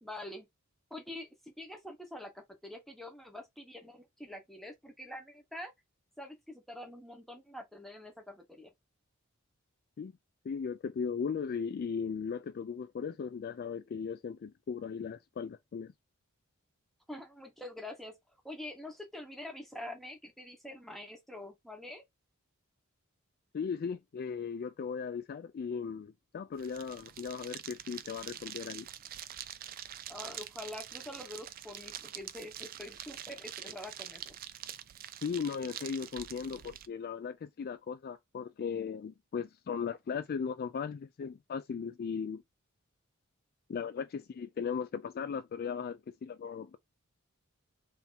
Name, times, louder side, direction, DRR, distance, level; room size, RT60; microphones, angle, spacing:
voice 1, 0.0-0.5 0.9-5.7 6.2-8.7 17.1-18.1 18.4-22.0 30.1-34.4, left 1 dB, ahead, 1.1 m, -45 dB
voice 2, 10.4-15.9 23.5-28.9 35.2-42.4 43.7-46.8, left 6 dB, 45° left, 0.3 m, -37 dB
sound 1, 26.5-36.9, right 11 dB, 45° right, 0.4 m, -45 dB
3.4 x 2.8 x 4.1 m
head